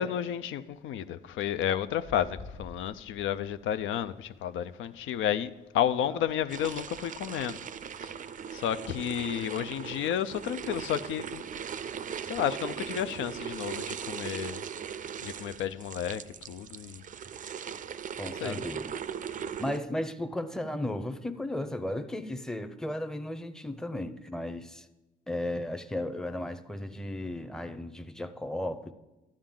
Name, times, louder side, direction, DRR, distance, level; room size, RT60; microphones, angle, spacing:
voice 1, 0.0-7.6 8.0-8.1 8.5-11.5 12.2-14.6 15.2-16.2 16.5-17.0 18.4-18.6, left 10 dB, 80° left, 0.4 m, -31 dB
sound 1, 1.7-7.4, left 3 dB, 50° left, 1.2 m, -51 dB
sound 2, 6.5-19.8, right 8 dB, 40° right, 0.4 m, -39 dB
voice 2, 18.2-18.9 19.6-24.9 25.3-28.9, left 1 dB, 5° left, 0.6 m, -35 dB
12.5 x 8.7 x 3.8 m
cardioid pair, 90°, 20 cm